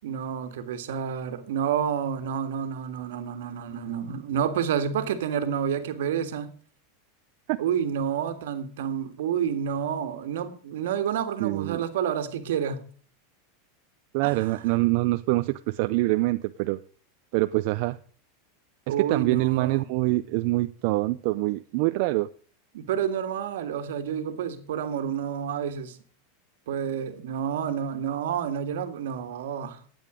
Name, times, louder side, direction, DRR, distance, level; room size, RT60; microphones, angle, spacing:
voice 1, 0.0-6.5 7.6-12.8 14.2-14.6 18.9-19.9 22.7-26.0 26.7-29.8, right 8 dB, 80° right, 1.7 m, -29 dB
voice 2, 11.4-11.8 14.1-16.8 17.3-18.0 18.9-22.3, right 20 dB, 55° right, 0.5 m, -25 dB
12.0 x 8.8 x 5.0 m
supercardioid pair, 130°, 0 cm